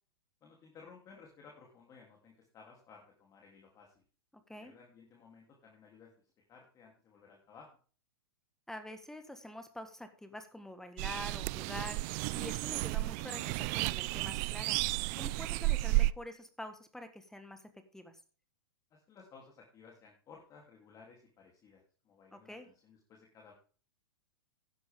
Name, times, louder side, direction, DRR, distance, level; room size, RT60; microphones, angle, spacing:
voice 1, 0.4-4.0 4.5-6.1 6.5-7.7 18.9-23.5, left 5 dB, 25° left, -1 dB, 3.1 m, -57 dB
voice 2, 8.7-17.6 17.9-18.2 22.3-22.7, left 1 dB, 5° left, 9 dB, 1.5 m, -46 dB
sound 1, 11.0-16.1, right 21 dB, 40° right, 0.4 m, -33 dB
12.5 x 10.5 x 3.6 m, 0.40 s
hypercardioid pair, 115°, 13 cm